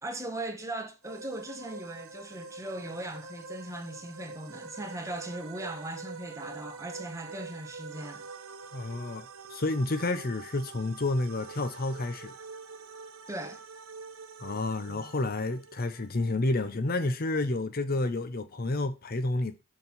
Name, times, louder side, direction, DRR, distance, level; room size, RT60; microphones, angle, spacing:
voice 1, 0.0-8.3 13.3-13.6, right 1 dB, 15° right, 1.6 m, -39 dB
sound 1, 1.0-16.4, right 4 dB, 80° right, 0.9 m, -46 dB
voice 2, 8.7-12.3 14.4-19.6, left 2 dB, 45° left, 0.8 m, -30 dB
6.9 x 6.3 x 5.5 m
head